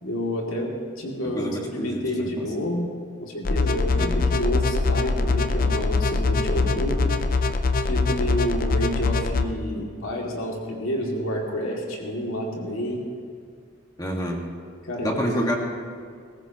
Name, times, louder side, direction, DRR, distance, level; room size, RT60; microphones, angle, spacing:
voice 1, 0.0-2.9 3.2-7.0 7.9-13.0 14.9-15.2, left 1 dB, 80° left, -2 dB, 2.5 m, -29 dB
voice 2, 1.2-2.5 4.0-4.3 7.5-7.6 14.0-14.4 15.0-15.6, equal, 20° left, 0 dB, 1.8 m, -28 dB
sound 1, 3.4-9.4, left 3 dB, 45° left, 0.6 m, -23 dB
21.0 x 18.0 x 3.0 m, 2.2 s
head